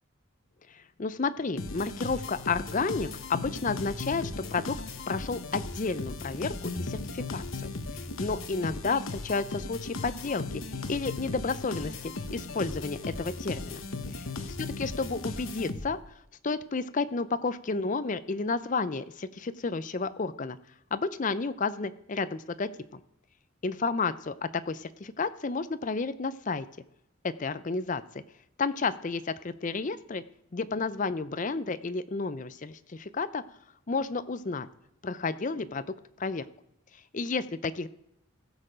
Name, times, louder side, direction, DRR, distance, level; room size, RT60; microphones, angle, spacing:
voice 1, 0.7-4.8 5.1-7.7 8.2-10.6 10.9-13.8 14.8-16.0 16.4-20.6 20.9-23.0 23.6-26.7 27.2-28.0 28.6-30.2 30.5-33.4 33.9-34.7 35.0-35.8 36.2-36.4 37.1-37.9, left 4 dB, 35° left, 14 dB, 0.5 m, -31 dB
sound 1, 1.6-16.1, left 3 dB, 65° left, 1.0 m, -37 dB
16.5 x 6.7 x 5.0 m, 0.80 s
head